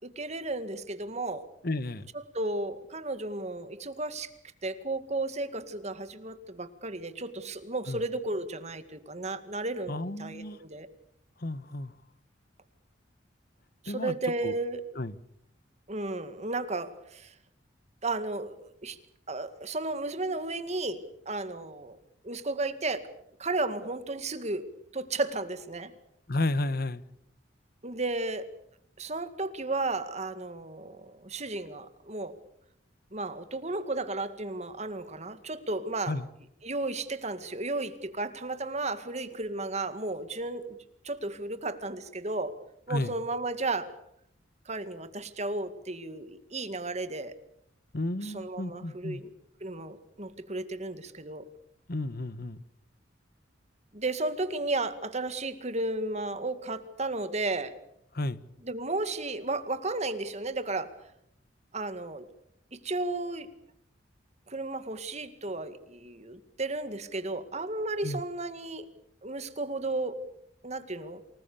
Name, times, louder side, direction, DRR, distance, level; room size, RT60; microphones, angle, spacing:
voice 1, 0.0-1.4 2.1-4.3 4.6-10.9 13.8-14.9 15.9-17.3 18.0-18.6 18.8-19.0 19.3-22.0 22.2-23.1 23.4-25.9 27.8-28.5 29.0-32.4 33.1-36.2 36.6-40.8 41.0-42.5 42.9-43.9 44.7-47.4 48.2-49.3 49.6-51.5 53.9-57.8 58.6-60.9 61.7-62.3 62.7-63.5 64.5-68.9 69.2-70.2 70.6-71.2, right 2 dB, 35° right, 11 dB, 2.1 m, -33 dB
voice 2, 1.6-2.1 7.9-8.0 9.9-10.6 11.4-11.9 13.9-14.1 14.4-14.5 14.9-15.1 26.3-27.0 36.1-36.3 42.9-43.1 47.9-49.2 51.9-52.6 58.1-58.4 68.0-68.2, left 2 dB, 50° left, 15 dB, 1.3 m, -32 dB
28.0 x 20.0 x 6.9 m, 0.75 s
head